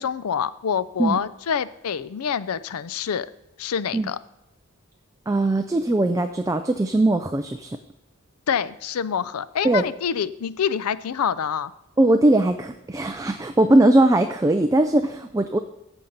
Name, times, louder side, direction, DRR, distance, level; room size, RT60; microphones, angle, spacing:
voice 1, 0.0-3.3 3.6-4.2 8.5-11.7, left 7 dB, 85° left, 16 dB, 0.5 m, -26 dB
voice 2, 5.3-7.8 9.6-9.9 12.0-15.6, right 1 dB, 15° right, 7 dB, 0.4 m, -20 dB
15.0 x 5.7 x 4.0 m, 0.93 s
head